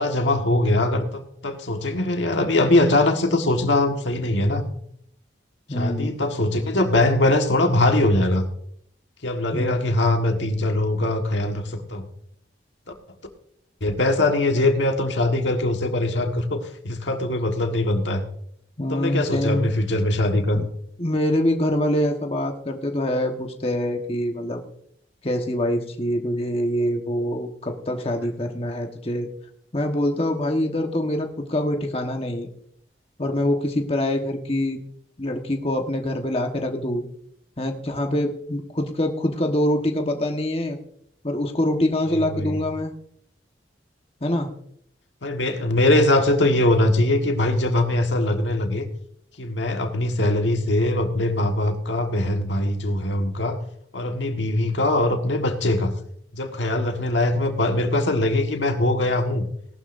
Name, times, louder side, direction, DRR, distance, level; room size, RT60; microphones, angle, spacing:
voice 1, 0.0-4.7 5.7-8.5 9.2-12.0 13.8-18.2 18.9-20.6 42.1-42.6 45.2-48.8 49.4-53.6 53.9-55.9 56.3-59.5, left 1 dB, 85° left, 4 dB, 1.5 m, -22 dB
voice 2, 5.7-6.2 9.5-9.9 18.8-19.7 20.5-20.7 21.0-24.6 25.2-29.3 29.7-32.5 33.2-34.8 35.2-37.0 37.6-40.8 41.2-42.9 44.2-44.5, left 1 dB, 30° left, 3 dB, 1.3 m, -25 dB
18.5 x 12.0 x 2.6 m, 0.68 s
head